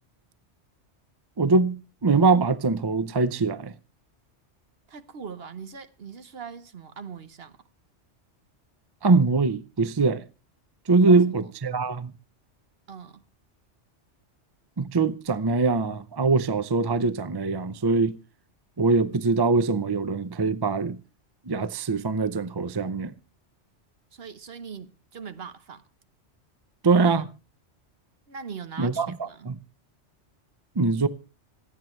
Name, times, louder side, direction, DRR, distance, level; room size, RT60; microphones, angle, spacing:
voice 1, 1.4-3.7 9.0-10.2 10.9-12.1 14.8-18.2 18.8-21.0 21.5-23.1 26.8-27.3 28.8-29.6 30.8-31.1, right 4 dB, 30° right, 0.5 m, -23 dB
voice 2, 4.9-7.6 11.0-11.3 12.9-13.2 24.1-25.8 28.3-29.5, right 6 dB, 60° right, 1.2 m, -41 dB
26.0 x 9.1 x 3.2 m
omnidirectional pair, 1.2 m